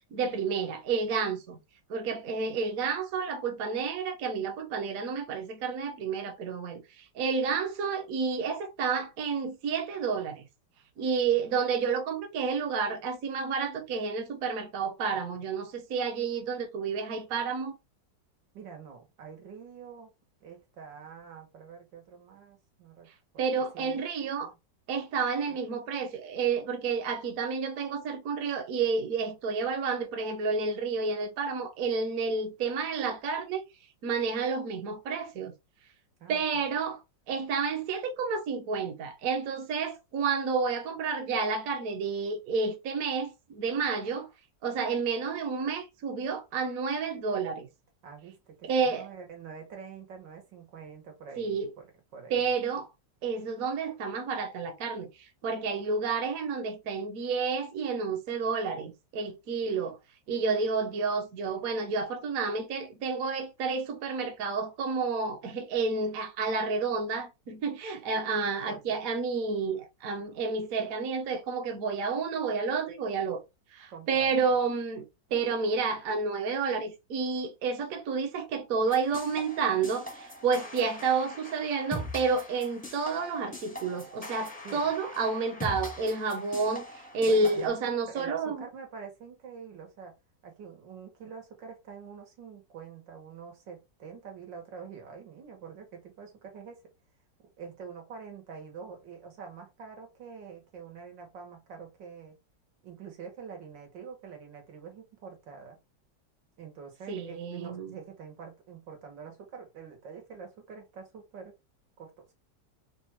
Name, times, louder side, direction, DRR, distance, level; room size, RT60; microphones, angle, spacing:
voice 1, 0.1-1.6 1.9-10.5 11.0-17.8 23.4-24.5 24.9-33.6 34.0-35.5 36.3-37.0 37.3-44.3 44.6-47.7 48.6-49.1 51.4-51.7 52.3-52.9 53.2-60.0 60.3-73.4 73.7-75.0 75.3-88.6 107.1-108.0, right 5 dB, 60° right, 1.2 m, -30 dB
voice 2, 18.5-20.1 20.4-23.1 23.3-23.4 23.7-24.0 24.4-24.6 25.5-25.6 36.2-36.7 48.0-51.9 52.1-52.4 68.7-69.0 73.9-74.3 84.6-84.9 87.3-87.7 88.1-90.1 90.4-96.8 97.6-102.4 102.8-105.8 106.6-111.5 112.0-112.1, right 6 dB, 85° right, 2.0 m, -46 dB
sound 1, 78.9-87.7, equal, 10° left, 0.6 m, -42 dB
4.0 x 2.4 x 4.3 m
omnidirectional pair, 1.9 m